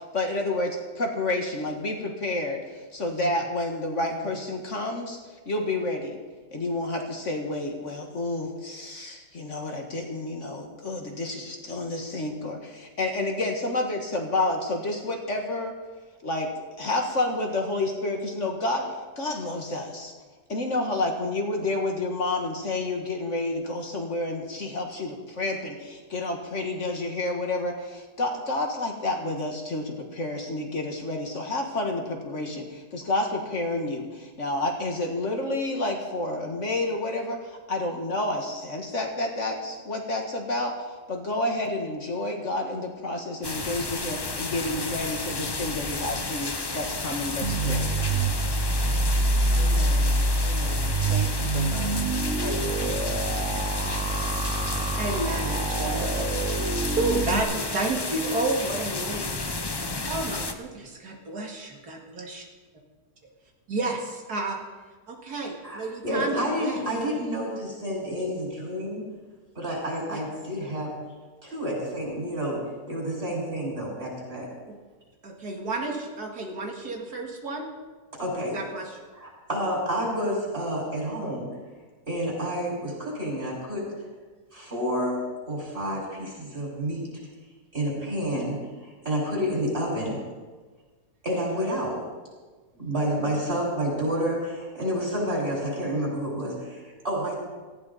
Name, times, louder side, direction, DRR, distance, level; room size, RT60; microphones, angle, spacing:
voice 1, 0.0-5.2 5.5-6.2 6.5-15.7 16.2-18.9 19.2-20.1 20.5-48.0 52.6-53.6, left 2 dB, 50° left, 2 dB, 1.9 m, -30 dB
sound 1, 43.4-60.5, left 3 dB, 25° left, 0.5 m, -32 dB
sound 2, 47.4-57.4, right 2 dB, 55° right, 1.4 m, -26 dB
voice 2, 49.6-50.1 50.4-52.0 52.4-53.3, left 1 dB, 70° left, 0 dB, 2.9 m, -38 dB
voice 3, 55.0-59.8 60.1-62.4 63.7-64.6 65.1-66.8 70.1-70.2 74.7-74.8 75.2-77.7 78.5-79.1, right 2 dB, 80° right, 0 dB, 2.7 m, -31 dB
voice 4, 65.6-69.0 69.5-70.9 71.4-72.6 72.9-74.5 78.1-78.6 79.1-81.5 82.1-83.8 84.5-85.2 85.5-87.1 87.7-88.5 88.8-90.2 91.2-92.0 92.7-97.3, equal, 40° right, -3 dB, 6.7 m, -29 dB
18.0 x 15.0 x 4.2 m, 1.3 s
omnidirectional pair, 1.7 m